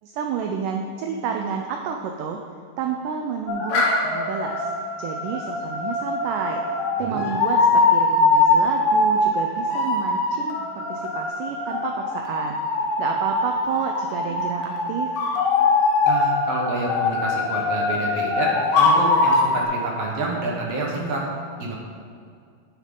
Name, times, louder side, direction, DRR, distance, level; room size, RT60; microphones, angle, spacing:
voice 1, 0.0-2.4 2.8-12.6 13.0-15.3, right 6 dB, 85° right, 3 dB, 1.9 m, -30 dB
sound 1, 3.5-19.6, left 3 dB, 90° left, 3.3 m, -22 dB
voice 2, 16.0-21.2 21.6-21.7, right 2 dB, 60° right, -2 dB, 1.7 m, -28 dB
10.0 x 9.4 x 3.8 m, 2.3 s
omnidirectional pair, 4.3 m